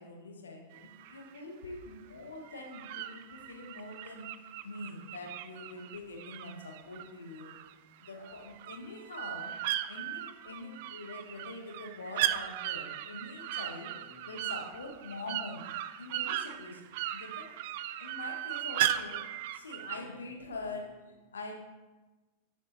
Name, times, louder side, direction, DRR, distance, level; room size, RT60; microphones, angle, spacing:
voice 1, 0.0-4.2 4.6-7.6 8.0-9.6 9.9-15.7 16.0-17.5 18.0-19.2 19.5-21.5, left 2 dB, 70° left, 1 dB, 1.4 m, -44 dB
sound 1, 0.7-1.4 2.4-7.7 8.0-20.0, right 12 dB, 50° right, 0.3 m, -37 dB
6.5 x 5.9 x 4.1 m, 1.2 s
figure-of-eight pair, 90°, 0 cm